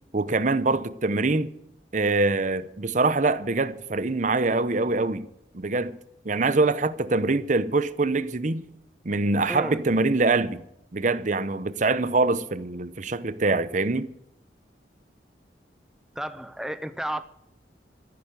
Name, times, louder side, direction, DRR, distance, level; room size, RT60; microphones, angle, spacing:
voice 1, 0.1-1.5 1.9-5.3 5.5-6.0 6.2-8.6 9.0-10.6 10.9-14.1, right 3 dB, 45° right, 0.8 m, -24 dB
voice 2, 16.2-17.2, right 1 dB, 5° right, 0.5 m, -32 dB
14.0 x 11.0 x 6.8 m
head